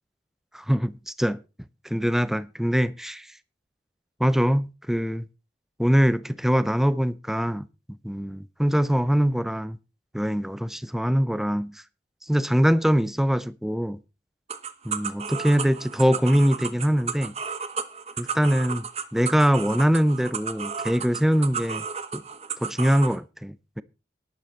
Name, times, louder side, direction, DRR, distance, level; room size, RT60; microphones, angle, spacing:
voice 1, 0.5-1.4 1.8-3.3 4.2-5.3 5.8-7.7 8.0-9.8 10.1-11.8 12.3-14.0 14.8-17.3 18.2-18.8 19.1-21.8 22.1-22.2 22.6-23.8, equal, ahead, 0.5 m, -23 dB
sound 1, 14.5-23.2, right 6 dB, 35° right, 1.0 m, -33 dB
11.5 x 11.0 x 4.2 m
head